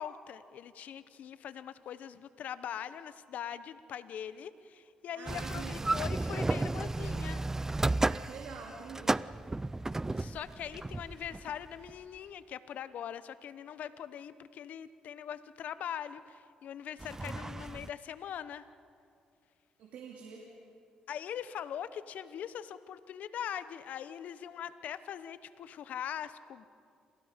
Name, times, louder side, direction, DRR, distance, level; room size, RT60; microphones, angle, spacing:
voice 1, 0.0-7.4 10.1-18.7 21.1-26.7, left 9 dB, 70° left, 14 dB, 0.9 m, -42 dB
voice 2, 5.1-6.0 8.0-9.2 19.8-20.4, right 6 dB, 80° right, -1 dB, 2.8 m, -46 dB
sound 1, 5.3-12.0 17.0-17.9, right 2 dB, 20° right, 0.5 m, -33 dB
28.5 x 27.5 x 5.2 m, 2.4 s
supercardioid pair, 65°, 3 cm